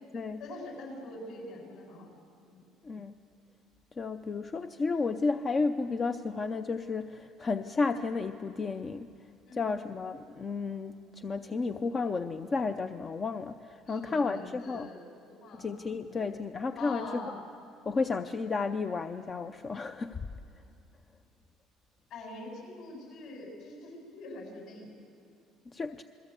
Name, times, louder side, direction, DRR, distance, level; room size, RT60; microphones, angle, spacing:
voice 1, 0.4-2.1 2.5-2.6 9.5-9.7 13.9-15.0 15.3-15.7 16.1-16.2 16.8-17.4 22.1-24.9, left 2 dB, 55° left, 1 dB, 7.4 m, -43 dB
voice 2, 2.8-3.2 4.0-9.1 9.5-14.9 15.5-17.2 17.9-20.3 25.7-26.0, left 4 dB, 25° left, 9 dB, 0.5 m, -32 dB
28.5 x 21.5 x 8.2 m, 2.6 s
cardioid pair, 165°, 0 cm